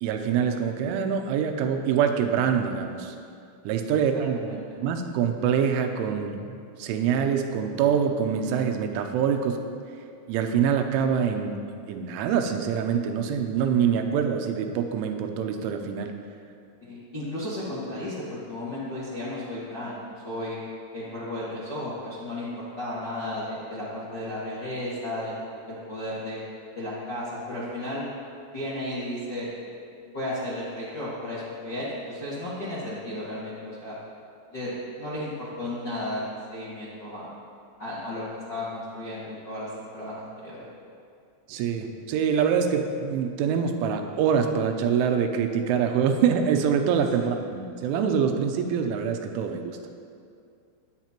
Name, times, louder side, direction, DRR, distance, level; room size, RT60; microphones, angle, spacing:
voice 1, 0.0-3.1 3.6-9.7 10.3-16.2 41.5-50.0, right 7 dB, 85° right, 5 dB, 3.2 m, -25 dB
voice 2, 16.8-20.0 20.2-20.6 20.9-26.4 26.7-28.0 28.5-29.5 30.1-34.0 34.5-34.7 35.0-37.3 37.8-38.2 38.5-40.7 47.1-47.2, left 1 dB, 55° left, -10 dB, 1.2 m, -34 dB
20.0 x 8.2 x 3.0 m, 2.4 s
omnidirectional pair, 5.5 m